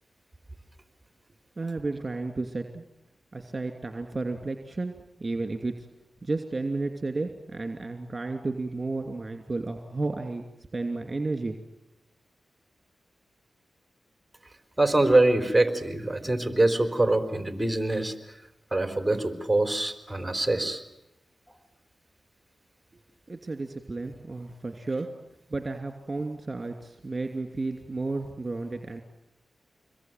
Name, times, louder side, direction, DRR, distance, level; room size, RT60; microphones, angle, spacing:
voice 1, 1.6-2.8 3.3-5.9 6.2-10.5 10.7-11.6 23.3-25.1 25.5-29.0, right 3 dB, 35° right, 5 dB, 2.8 m, -32 dB
voice 2, 14.8-18.1 18.7-20.8, right 2 dB, 10° right, 8 dB, 4.4 m, -24 dB
26.5 x 22.0 x 9.3 m, 0.89 s
cardioid pair, 50°, 0 cm